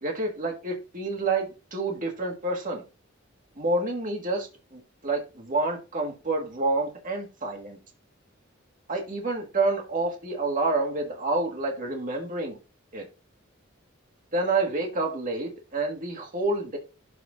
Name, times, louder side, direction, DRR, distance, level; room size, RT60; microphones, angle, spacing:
voice 1, 0.0-2.8 3.6-7.8 8.9-12.6 12.9-13.1 14.3-16.8, right 2 dB, 45° right, 1.8 m, -28 dB
12.0 x 4.6 x 2.6 m
head